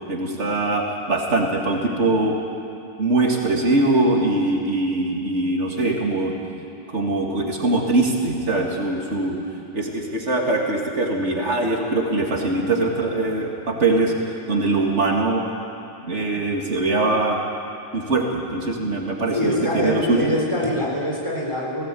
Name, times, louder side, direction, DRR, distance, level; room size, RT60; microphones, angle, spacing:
voice 1, 0.1-2.3 3.0-6.3 6.9-9.4 9.7-14.1 14.5-15.4 16.0-17.4 17.9-20.3, right 2 dB, 85° right, 0 dB, 2.6 m, -22 dB
voice 2, 19.3-21.8, equal, 25° left, -3 dB, 4.2 m, -24 dB
19.0 x 17.0 x 8.5 m, 2.7 s
omnidirectional pair, 1.2 m